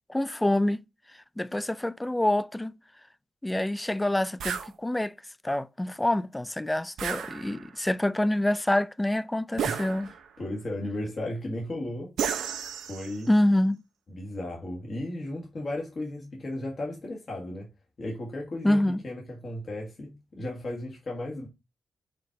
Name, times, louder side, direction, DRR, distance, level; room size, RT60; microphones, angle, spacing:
voice 1, 0.1-0.8 1.4-2.7 3.4-5.1 5.4-10.1 13.3-13.8 18.6-19.0, left 1 dB, 10° left, 0.3 m, -26 dB
sound 1, 4.4-4.7 7.0-7.8 9.6-10.4 12.2-13.3, right 8 dB, 85° right, 0.8 m, -33 dB
voice 2, 9.6-12.1 12.9-13.3 14.1-17.7 18.0-21.5, left 1 dB, 35° left, 1.5 m, -35 dB
5.1 x 4.3 x 4.6 m
wide cardioid pair, 165°, 0 cm